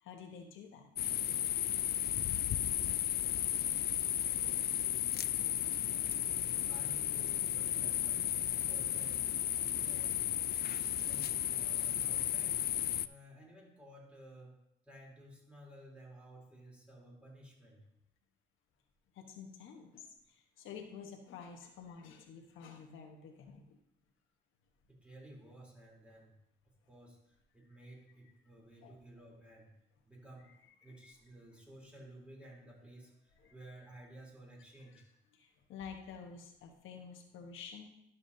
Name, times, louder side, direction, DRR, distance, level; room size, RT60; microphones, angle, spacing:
voice 1, 0.0-1.0 1.7-1.9 19.1-23.8 28.8-28.9 30.8-31.0 33.4-33.5 34.9-35.0 35.3-37.9, left 6 dB, 85° left, 2 dB, 1.2 m, -50 dB
sound 1, 1.0-13.1, left 11 dB, 55° left, 0.4 m, -34 dB
voice 2, 6.6-8.3 8.7-10.1 11.0-12.6 13.0-14.6 14.8-17.8 24.9-26.4 26.9-29.7 30.1-35.1, right 1 dB, 5° right, -3 dB, 3.4 m, -55 dB
11.5 x 7.2 x 2.7 m, 0.80 s
cardioid pair, 90°, 20 cm